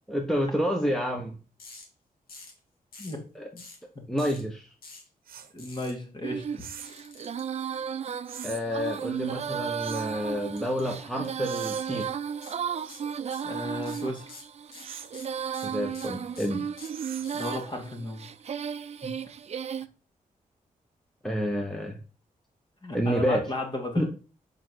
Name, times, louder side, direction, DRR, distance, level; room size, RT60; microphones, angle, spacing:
voice 1, 0.1-1.3 3.3-3.5 4.1-4.7 8.4-12.1 15.6-16.6 21.2-22.0 22.9-23.4 24.0-24.1, equal, 5° left, 2 dB, 1.0 m, -29 dB
sound 1, 1.6-1.9 2.3-2.6 2.9-3.2 3.6-3.8 4.2-4.4 4.8-5.1 5.6-5.9 6.8-7.4 10.6-10.8 11.1-11.3 11.7-12.0 12.4-12.6 12.9-13.5 13.8-17.6, left 3 dB, 85° left, 2.2 m, -47 dB
sound 2, 5.3-5.5 6.6-7.0 8.3-8.6 9.8-10.2 11.4-11.9 12.8-13.2 14.8-15.2 16.9-17.4, right 8 dB, 80° right, 0.8 m, -43 dB
voice 2, 5.5-6.6 13.4-14.3 17.3-18.2 19.0-19.1 22.8-24.0, left 1 dB, 30° left, 2 dB, 2.3 m, -34 dB
Female singing, 6.2-19.9, right 7 dB, 45° right, 0.5 m, -34 dB
5.0 x 4.5 x 6.1 m, 0.36 s
cardioid pair, 95°, 15 cm